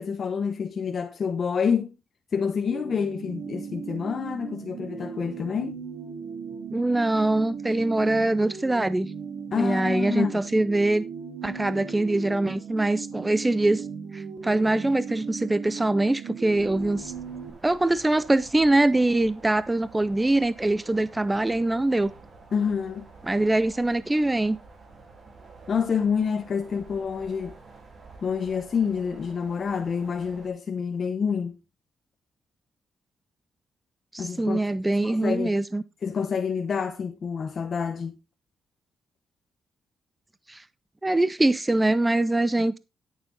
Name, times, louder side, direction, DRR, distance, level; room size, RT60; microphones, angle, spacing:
voice 1, 0.0-1.9 2.3-5.8 9.5-10.4 22.5-23.1 25.7-27.6 28.2-31.5 34.2-34.6 34.8-35.6 36.0-38.2, left 6 dB, 45° left, 0.9 m, -28 dB
sound 1, 2.7-17.5, right 6 dB, 70° right, 2.2 m, -37 dB
voice 2, 6.7-9.1 9.6-11.0 11.4-13.9 14.1-17.1 17.6-22.1 23.3-24.6 34.1-35.8 40.5-40.6 41.0-42.8, right 2 dB, 15° right, 0.5 m, -23 dB
sound 2, 16.5-30.5, right 3 dB, 45° right, 3.8 m, -49 dB
11.5 x 6.9 x 3.9 m
cardioid pair, 110°, 0 cm